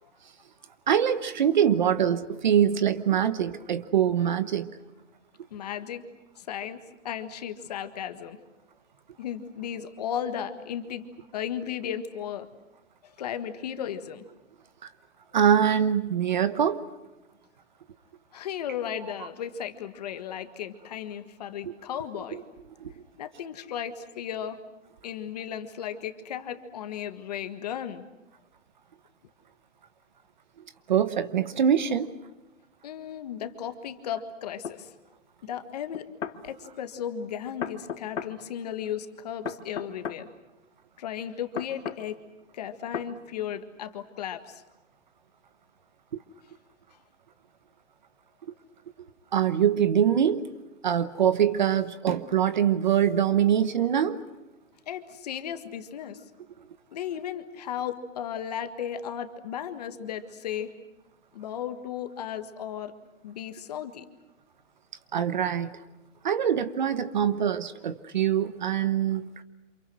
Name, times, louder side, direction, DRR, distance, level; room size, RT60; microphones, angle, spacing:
voice 1, 0.9-4.7 15.3-16.8 22.8-22.9 30.9-32.1 49.3-50.4 50.8-54.2 65.1-65.7 66.2-69.3, right 9 dB, 40° right, 14 dB, 1.0 m, -23 dB
voice 2, 5.5-6.0 6.4-8.4 9.2-11.1 11.3-12.5 13.2-14.2 18.3-22.4 23.2-24.6 25.0-28.0 32.8-34.9 35.4-36.1 36.4-40.3 41.0-42.2 42.5-44.6 54.9-56.2 56.9-60.7 61.3-62.9 63.2-64.0, left 9 dB, 30° left, 9 dB, 1.7 m, -35 dB
sound 1, 34.6-34.8 35.9-36.4 37.6-38.3 39.5-40.2 41.6-42.0 42.9-43.1, left 7 dB, 70° left, 2.3 m, -34 dB
29.5 x 28.0 x 6.1 m, 1.0 s
hypercardioid pair, 175°, 38 cm